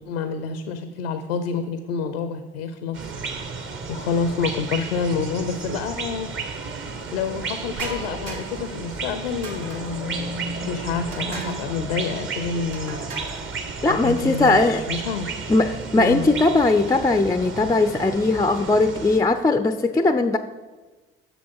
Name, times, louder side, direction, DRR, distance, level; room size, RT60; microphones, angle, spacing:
voice 1, 0.1-3.5 3.9-6.3 6.6-10.3 10.7-13.0 13.9-15.4 16.0-16.3, left 5 dB, 85° left, 9 dB, 0.6 m, -28 dB
sound 1, 2.9-19.2, right 4 dB, 45° right, 1.1 m, -33 dB
sound 2, 7.7-8.7 9.4-10.1 11.1-11.7 12.7-13.5, right 2 dB, 80° right, 1.5 m, -37 dB
sound 3, 10.0-13.6 14.9-17.2 17.8-18.0 18.5-18.8, right 2 dB, 20° right, 0.7 m, -39 dB
voice 2, 13.8-14.8 15.5-20.4, left 2 dB, 10° left, 9 dB, 0.4 m, -19 dB
7.0 x 6.4 x 5.4 m, 1.3 s
hypercardioid pair, 65°, 29 cm